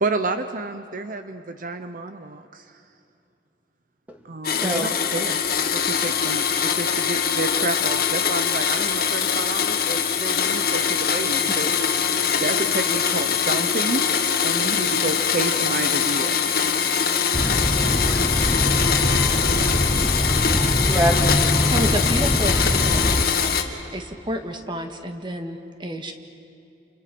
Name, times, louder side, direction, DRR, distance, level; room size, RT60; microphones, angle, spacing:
voice 1, 0.0-2.6 4.2-5.4 5.7-11.7 12.0-14.0 14.4-16.4, right 3 dB, 50° right, 9 dB, 0.8 m, -30 dB
Domestic sounds home sounds, 4.4-23.6, left 7 dB, 60° left, 1.8 m, -22 dB
voice 2, 4.6-5.3 11.5-11.9 19.0-19.5 20.6-21.5, equal, 10° right, 2 dB, 2.2 m, -28 dB
sound 1, 17.3-23.2, equal, 10° left, 0.9 m, -23 dB
voice 3, 21.7-23.6 23.9-26.1, equal, 25° right, 5 dB, 1.8 m, -30 dB
29.5 x 28.0 x 6.1 m, 2.7 s
head